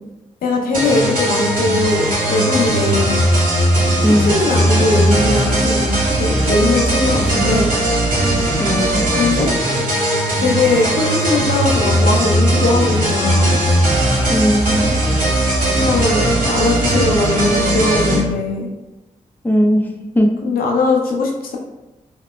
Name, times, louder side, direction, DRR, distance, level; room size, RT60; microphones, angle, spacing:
voice 1, 0.4-3.1 4.0-5.9 6.2-7.7 9.2-9.5 10.4-13.6 15.7-18.7 20.4-21.6, left 2 dB, 70° left, 0 dB, 0.6 m, -19 dB
sound 1, 0.7-18.2, right 1 dB, 65° right, 1.3 m, -17 dB
voice 2, 4.0-4.3 8.5-9.1 14.3-15.0 19.4-20.3, equal, 10° left, 2 dB, 0.6 m, -17 dB
4.9 x 2.1 x 2.2 m, 1.0 s
supercardioid pair, 40°, 15 cm